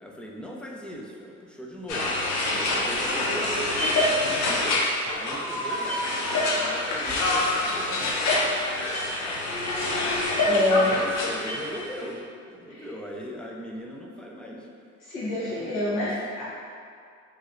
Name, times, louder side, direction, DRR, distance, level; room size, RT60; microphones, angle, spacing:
voice 1, 0.0-2.2 2.5-3.6 4.0-4.8 5.1-6.1 6.5-8.8 9.2-9.6 10.3-10.5 10.7-14.7 15.3-16.1, equal, 5° left, -2 dB, 0.3 m, -39 dB
sound 1, 1.9-11.9, left 2 dB, 65° left, 0.6 m, -26 dB
sound 2, 5.3-8.4, right 1 dB, 60° right, 0.6 m, -36 dB
voice 2, 10.4-11.0 12.7-12.9 15.0-16.4, left 2 dB, 80° left, -9 dB, 1.2 m, -26 dB
3.1 x 2.7 x 2.5 m, 2.3 s
cardioid pair, 90°, 30 cm